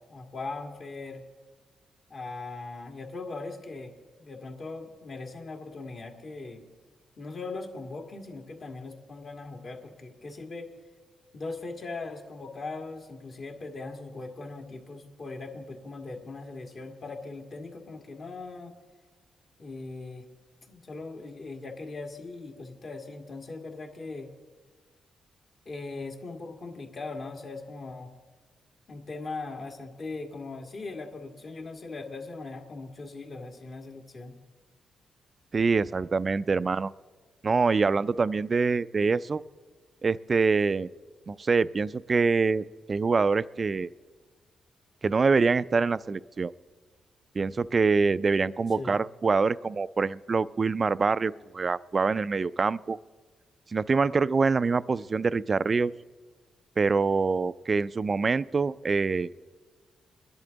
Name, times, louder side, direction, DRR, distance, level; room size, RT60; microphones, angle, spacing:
voice 1, 0.1-1.2 2.1-3.9 4.2-6.6 7.2-10.7 11.3-18.7 19.6-20.3 20.7-24.3 25.7-28.1 28.9-34.4 48.8-49.0, left 3 dB, 55° left, 3 dB, 1.9 m, -39 dB
voice 2, 35.5-36.9 37.4-39.4 40.0-40.9 41.3-43.9 45.0-46.5 47.4-53.0 53.7-55.9 56.8-59.3, right 4 dB, 40° right, 17 dB, 0.3 m, -25 dB
21.0 x 11.0 x 3.9 m, 1.4 s
cardioid pair, 70°, 0 cm